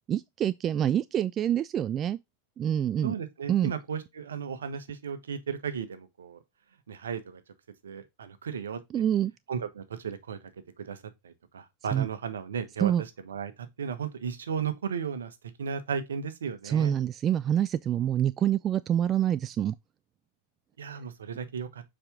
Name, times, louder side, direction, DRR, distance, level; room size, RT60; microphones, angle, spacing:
voice 1, 0.1-2.2 2.6-3.2 3.5-3.7 8.9-9.3 11.9-12.1 12.8-13.0 16.6-19.7, right 10 dB, 30° right, 0.3 m, -26 dB
voice 2, 3.0-6.4 6.9-7.4 7.8-8.8 9.5-10.4 10.8-11.0 11.2-12.9 13.3-16.9 20.8-21.8, right 7 dB, 65° right, 1.2 m, -35 dB
7.2 x 5.0 x 3.5 m
figure-of-eight pair, 90°, 0 cm